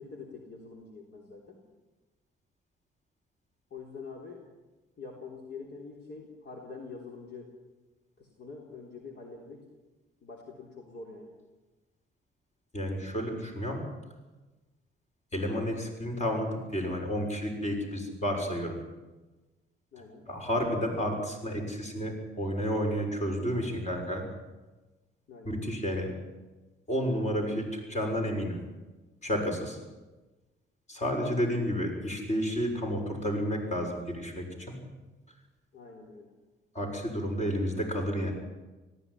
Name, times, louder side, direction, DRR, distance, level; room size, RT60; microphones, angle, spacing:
voice 1, 0.0-1.6 3.7-4.4 5.0-7.5 8.2-9.7 10.2-11.3 19.9-20.3 25.3-25.6 35.7-36.3, left 4 dB, 60° left, 0 dB, 3.7 m, -45 dB
voice 2, 12.7-13.8 15.3-18.8 20.3-24.2 25.4-26.1 26.9-28.6 29.2-29.8 30.9-34.8 36.7-38.3, equal, 35° left, 2 dB, 6.5 m, -31 dB
18.5 x 15.0 x 9.9 m, 1.2 s
cardioid pair, 90°, 20 cm